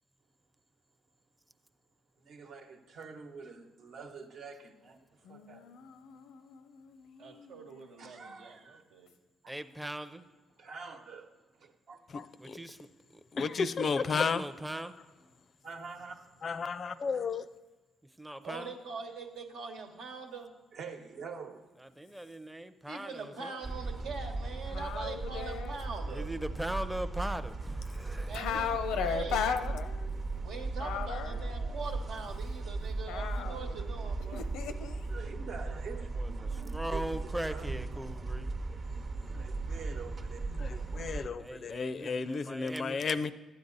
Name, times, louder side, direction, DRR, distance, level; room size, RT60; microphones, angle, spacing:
voice 1, 2.2-5.7 8.0-8.8 10.6-12.0 15.6-16.2 20.7-21.6 35.1-36.1 36.5-37.7 39.2-40.4, right 5 dB, 70° right, 1.1 m, -46 dB
voice 2, 5.2-8.5 24.7-25.8 28.3-30.2 30.8-32.0 33.1-33.8 34.3-35.1, left 7 dB, 90° left, 0.6 m, -37 dB
voice 3, 7.2-9.1 18.4-20.5 22.9-26.3 28.3-28.7 29.1-29.4 30.4-34.4, right 4 dB, 90° right, 1.3 m, -43 dB
voice 4, 9.5-10.3 12.4-13.2 13.9-14.9 18.0-18.7 21.8-23.7 26.1-28.4 36.0-38.5 41.4-43.0, right 1 dB, 5° right, 0.5 m, -40 dB
voice 5, 12.1-12.6 13.3-14.5 15.1-15.5 16.4-17.5 39.7-39.8 40.4-43.3, left 5 dB, 45° left, 0.4 m, -33 dB
sound 1, 23.6-41.3, right 3 dB, 40° right, 0.7 m, -37 dB
12.0 x 8.7 x 4.0 m
cardioid pair, 90°, 0 cm